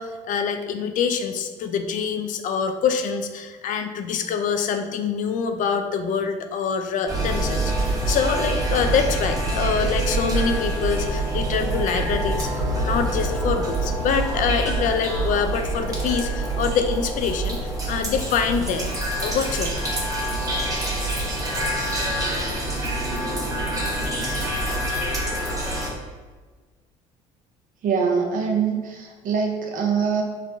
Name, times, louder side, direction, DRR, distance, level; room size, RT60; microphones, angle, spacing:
voice 1, 0.0-12.5 12.7-17.6 17.9-18.9 19.2-19.9, left 6 dB, 50° left, 7 dB, 0.4 m, -25 dB
sound 1, 7.1-25.9, right 2 dB, 20° right, 0.9 m, -26 dB
voice 2, 27.8-30.2, right 6 dB, 55° right, 1 dB, 0.6 m, -23 dB
3.1 x 2.1 x 2.5 m, 1.4 s
hypercardioid pair, 60°, 17 cm